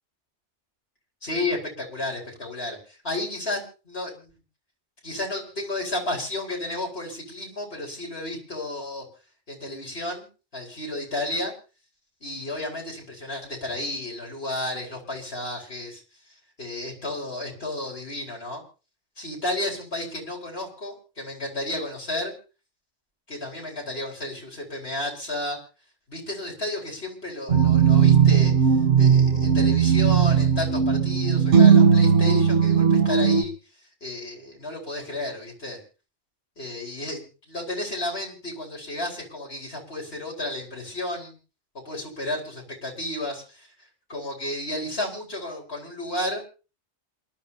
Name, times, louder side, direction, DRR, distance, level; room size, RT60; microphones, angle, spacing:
voice 1, 1.2-4.3 5.0-9.0 9.5-10.3 10.5-11.5 12.2-16.0 16.6-18.6 19.2-22.3 23.3-25.6 26.1-33.5 34.0-35.8 36.6-37.2 37.5-41.4 41.7-43.7 44.1-46.4, left 1 dB, 55° left, -1 dB, 4.7 m, -32 dB
sound 1, 27.5-33.4, right 7 dB, 75° right, 1.6 m, -17 dB
27.5 x 12.5 x 2.8 m, 0.34 s
omnidirectional pair, 1.2 m